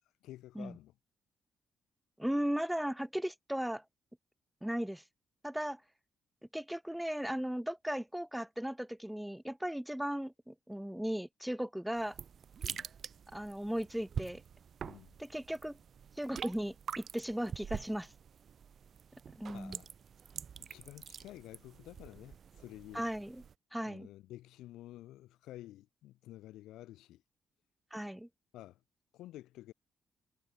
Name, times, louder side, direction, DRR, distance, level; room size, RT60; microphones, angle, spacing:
voice 1, 0.2-0.9 12.6-12.9 14.8-15.1 19.5-19.9 20.6-23.0 23.8-27.2 28.5-28.8 29.1-29.7, left 15 dB, 85° left, 0.8 m, -51 dB
voice 2, 2.2-3.8 4.6-5.0 5.4-5.8 6.5-12.2 13.3-14.4 15.2-15.8 16.2-18.1 19.4-19.8 22.9-23.4 23.7-24.1 27.9-28.3, equal, 5° right, 0.4 m, -36 dB
sound 1, 12.0-23.5, right 7 dB, 60° right, 0.5 m, -46 dB
supercardioid pair, 65°, 0 cm